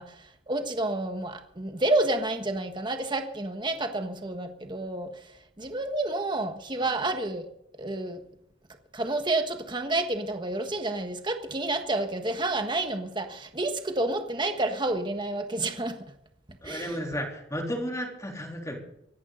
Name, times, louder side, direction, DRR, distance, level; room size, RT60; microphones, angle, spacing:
voice 1, 0.0-7.5 7.7-8.2 8.9-16.0 16.6-17.0, right 2 dB, 25° right, 6 dB, 1.5 m, -30 dB
voice 2, 16.6-18.8, equal, 15° left, 1 dB, 3.6 m, -33 dB
25.5 x 11.0 x 4.0 m, 0.76 s
head